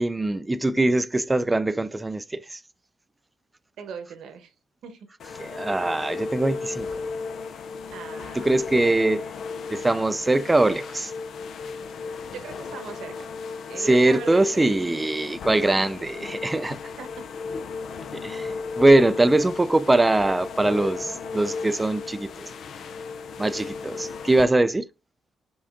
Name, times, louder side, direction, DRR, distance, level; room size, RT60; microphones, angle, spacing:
voice 1, 0.0-2.6 5.4-7.1 8.3-9.3 9.7-11.1 13.8-16.8 18.1-22.5 23.4-24.9, right 2 dB, 15° right, 0.3 m, -22 dB
voice 2, 3.8-4.5 4.8-5.1 7.9-8.6 12.3-13.3 13.7-14.7 16.7-17.2, right 6 dB, 75° right, 1.0 m, -39 dB
sound 1, 5.2-24.4, left 4 dB, 65° left, 0.4 m, -35 dB
5.6 x 3.7 x 2.5 m
cardioid pair, 90°, 0 cm